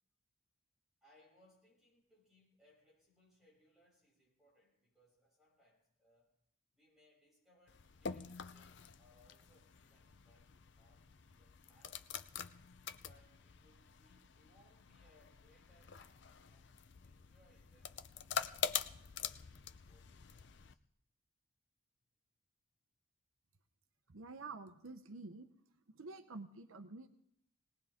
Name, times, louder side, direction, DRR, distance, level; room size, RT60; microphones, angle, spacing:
voice 1, 1.0-6.3 6.7-12.1 13.0-16.7 17.0-20.8, left 1 dB, ahead, -5 dB, 7.2 m, -71 dB
sound 1, 7.7-20.7, left 7 dB, 55° left, 0.6 m, -46 dB
voice 2, 24.1-25.5 25.9-27.1, right 3 dB, 80° right, 8 dB, 0.9 m, -49 dB
20.5 x 18.0 x 3.6 m, 0.74 s
head